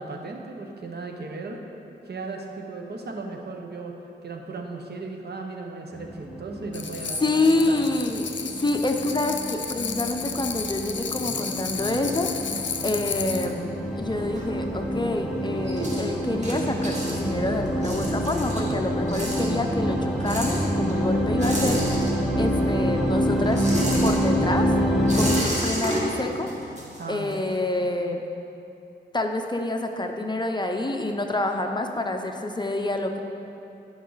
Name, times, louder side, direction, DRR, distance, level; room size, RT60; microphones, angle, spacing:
voice 1, 0.0-1.6 2.1-7.8 27.0-27.4, right 3 dB, 60° right, 2 dB, 1.0 m, -36 dB
sound 1, 5.9-25.4, equal, ahead, 1.1 m, -27 dB
sound 2, 6.7-13.5, left 6 dB, 70° left, 0.7 m, -33 dB
voice 2, 7.2-12.3 12.8-13.7 14.0-21.8 22.3-23.7 24.0-24.7 25.1-26.5 27.1-28.2 29.1-33.2, left 2 dB, 25° left, 4 dB, 0.7 m, -27 dB
sound 3, 13.6-15.0 15.3-22.6 22.8-27.5, right 1 dB, 35° right, 2.1 m, -32 dB
15.5 x 5.5 x 4.0 m, 2.7 s
wide cardioid pair, 85°, 19 cm